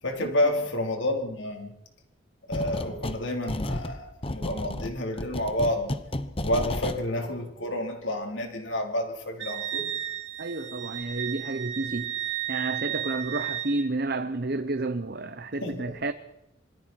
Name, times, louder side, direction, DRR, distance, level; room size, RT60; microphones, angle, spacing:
voice 1, 0.0-1.7 2.5-5.9 6.4-9.9 15.6-16.0, left 1 dB, 85° left, 4.3 m, -29 dB
sound 1, 2.5-3.2 3.5-7.0, left 1 dB, 30° left, 1.1 m, -32 dB
Wind instrument woodwind instrument, 9.4-13.9, right 11 dB, 90° right, 3.0 m, -33 dB
voice 2, 10.4-12.1 12.5-16.1, right 2 dB, 55° right, 1.0 m, -30 dB
27.0 x 22.5 x 4.7 m
head